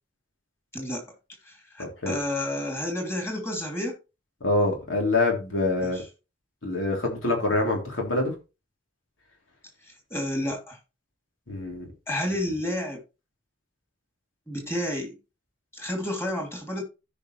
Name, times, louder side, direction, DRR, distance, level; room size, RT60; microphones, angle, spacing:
voice 1, 0.7-1.0 1.4-3.9 5.8-5.9 10.1-10.8 12.1-13.0 14.5-15.1 15.7-16.8, left 1 dB, 15° left, 2.7 m, -30 dB
voice 2, 4.4-6.0 6.6-8.3 11.5-11.9, left 2 dB, 90° left, 3.2 m, -25 dB
15.5 x 5.3 x 3.2 m
head